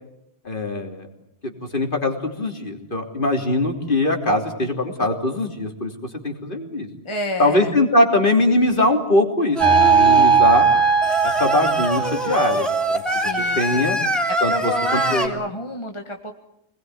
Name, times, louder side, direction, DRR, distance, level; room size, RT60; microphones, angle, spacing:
voice 1, 0.5-1.1 1.4-5.9 6.2-6.9 7.4-10.7 11.2-13.0 13.6-14.0 14.4-15.3, left 1 dB, 50° left, 3 dB, 3.6 m, -21 dB
voice 2, 7.0-7.7 13.1-13.9 14.3-16.3, left 2 dB, 25° left, 3 dB, 1.8 m, -29 dB
Singing, 9.6-10.4 11.0-15.3, right 2 dB, ahead, 3.5 m, -24 dB
sound 1, 9.6-12.8, right 5 dB, 45° right, 3.3 m, -17 dB
26.5 x 21.0 x 9.4 m, 0.80 s
omnidirectional pair, 1.1 m